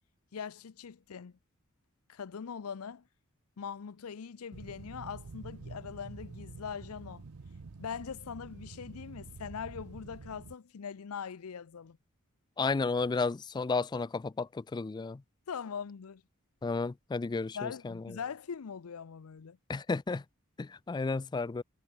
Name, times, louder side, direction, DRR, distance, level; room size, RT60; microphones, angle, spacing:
voice 1, 0.3-1.3 2.1-3.0 3.6-7.2 7.8-12.0 15.5-16.2 17.5-19.6, left 6 dB, 90° left, 0.5 m, -41 dB
sound 1, 4.5-10.5, right 4 dB, 85° right, 0.7 m, -48 dB
voice 2, 12.6-15.2 16.6-17.9 19.7-20.2 20.6-21.6, left 4 dB, 20° left, 0.3 m, -32 dB
head